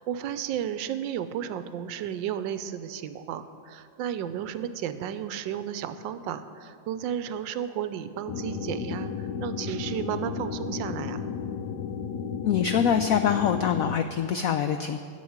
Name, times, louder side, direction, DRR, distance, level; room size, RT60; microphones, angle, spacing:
voice 1, 0.0-11.2, right 9 dB, 80° right, 12 dB, 1.3 m, -33 dB
sound 1, 8.3-14.0, left 6 dB, 70° left, 1.2 m, -33 dB
voice 2, 12.4-15.0, left 8 dB, 90° left, 8 dB, 0.7 m, -24 dB
11.5 x 7.3 x 8.6 m, 2.3 s
omnidirectional pair, 2.0 m